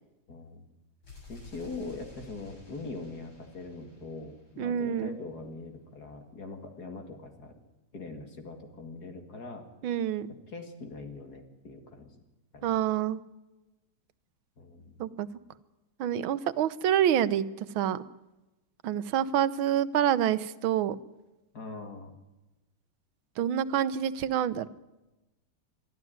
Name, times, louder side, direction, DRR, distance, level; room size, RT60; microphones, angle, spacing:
voice 1, 0.3-0.7 1.3-7.5 7.9-9.7 10.3-12.1 12.5-12.8 14.6-15.0 21.5-22.2, left 3 dB, 50° left, 6 dB, 2.7 m, -42 dB
sound 1, 1.0-4.9, left 2 dB, 70° left, 8.2 m, -51 dB
voice 2, 4.6-5.2 9.8-10.3 12.6-13.2 15.0-15.3 16.0-17.5 17.8-18.0 18.8-21.0 23.4-24.7, right 10 dB, 75° right, 15 dB, 1.6 m, -27 dB
23.0 x 13.0 x 9.4 m, 1.0 s
omnidirectional pair, 2.3 m